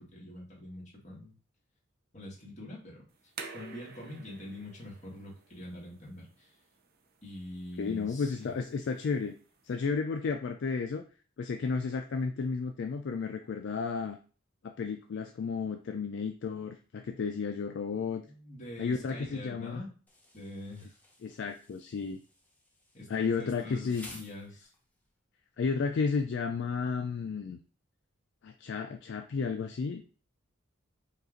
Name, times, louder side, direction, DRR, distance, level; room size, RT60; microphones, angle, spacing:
voice 1, 0.0-1.3 2.1-3.0 3.5-6.5 7.2-8.5 18.2-19.9 20.3-20.9 22.9-24.7, left 1 dB, 35° left, -4 dB, 1.7 m, -44 dB
sound 1, 3.1-9.8, right 4 dB, 50° right, 0.6 m, -51 dB
voice 2, 7.8-9.3 9.6-11.0 11.4-14.2 14.6-18.2 18.8-19.8 21.2-22.2 23.1-24.1 25.6-27.6 28.4-30.0, left 5 dB, 60° left, 6 dB, 0.3 m, -32 dB
Insect, 20.1-25.0, left 1 dB, 10° left, 0.8 m, -55 dB
5.3 x 2.5 x 3.8 m, 0.38 s
head